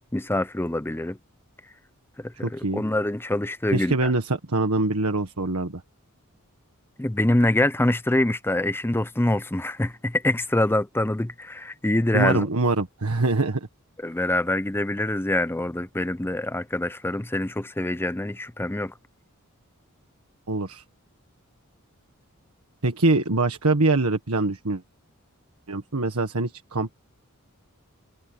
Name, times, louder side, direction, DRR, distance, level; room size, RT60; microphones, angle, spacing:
voice 1, 0.1-1.2 2.2-4.1 7.0-12.4 14.0-18.9, left 1 dB, 10° left, 0.6 m, -25 dB
voice 2, 2.4-2.8 3.7-5.8 12.1-13.7 20.5-20.8 22.8-24.8 25.7-26.9, right 2 dB, 80° right, 1.6 m, -24 dB
head